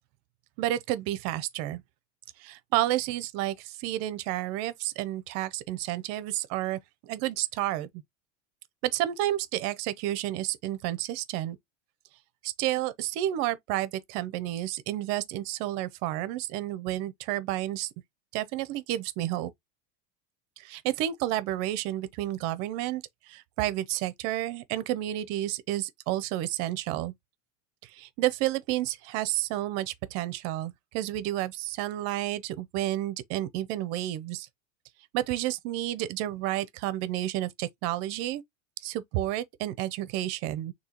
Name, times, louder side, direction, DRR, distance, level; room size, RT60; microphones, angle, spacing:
voice 1, 0.6-1.8 2.4-7.9 8.8-11.6 12.4-17.9 18.3-19.5 20.6-27.1 27.8-34.5 35.1-38.4 38.8-40.7, right 14 dB, 40° right, 0.6 m, -31 dB
6.6 x 2.8 x 2.9 m
supercardioid pair, 160°, 38 cm